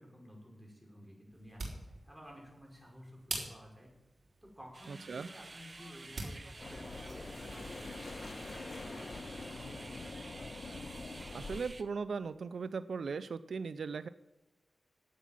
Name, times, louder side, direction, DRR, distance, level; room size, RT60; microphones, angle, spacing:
voice 1, 0.0-3.9 4.4-10.1, equal, 5° right, -1 dB, 5.4 m, -53 dB
sound 1, 1.3-6.4, right 2 dB, 60° right, 4.4 m, -46 dB
sound 2, 4.7-11.8, right 3 dB, 40° right, 1.0 m, -51 dB
voice 2, 4.9-5.3 11.3-14.1, right 5 dB, 80° right, 13 dB, 0.5 m, -38 dB
sound 3, 6.6-11.6, left 3 dB, 50° left, 1.4 m, -45 dB
11.5 x 8.3 x 7.6 m, 1.0 s
cardioid pair, 65°, 0 cm